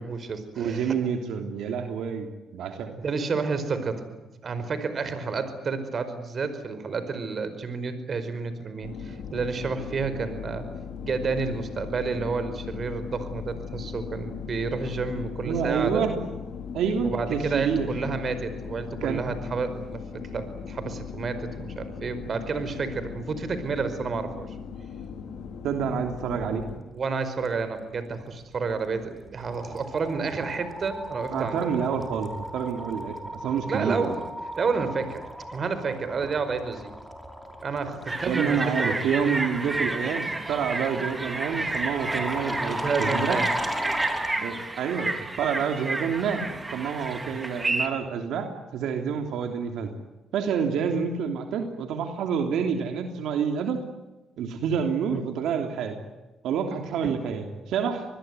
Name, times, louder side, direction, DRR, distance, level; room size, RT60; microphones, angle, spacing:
voice 1, 0.0-1.0 3.0-4.1 4.4-10.7 11.0-16.0 17.0-24.5 26.9-31.7 33.7-34.3 34.6-35.2 35.5-36.9 37.6-38.9 42.6-43.5 47.2-47.4 55.1-55.2 57.0-57.1, right 4 dB, 45° right, 11 dB, 4.9 m, -30 dB
voice 2, 0.6-3.0 15.5-16.3 16.7-17.9 19.0-19.2 25.6-26.6 31.3-34.2 38.3-43.4 44.4-46.4 46.7-49.9 50.3-53.8 54.4-56.0 56.4-58.0, right 7 dB, 80° right, 5 dB, 3.2 m, -28 dB
sound 1, 8.8-26.8, left 7 dB, 75° left, 3.7 m, -38 dB
sound 2, 28.5-28.8 29.1-44.4, equal, 5° right, 5.3 m, -36 dB
sound 3, 38.1-47.9, right 2 dB, 20° right, 3.5 m, -31 dB
26.5 x 20.5 x 9.6 m, 1.0 s
cardioid pair, 90°, 0 cm